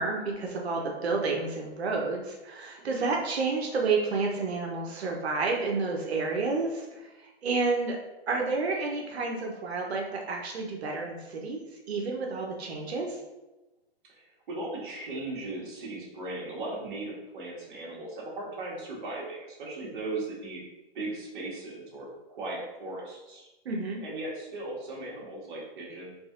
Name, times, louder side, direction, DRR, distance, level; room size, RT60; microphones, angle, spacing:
voice 1, 0.0-6.8 7.4-8.0 8.3-11.6 11.9-13.1 23.6-24.0, right 3 dB, 80° right, 1 dB, 0.9 m, -30 dB
voice 2, 14.1-20.6 20.9-23.5 24.0-26.1, right 2 dB, 50° right, -4 dB, 1.4 m, -38 dB
4.0 x 2.8 x 2.5 m, 1.1 s
hypercardioid pair, 155°, 31 cm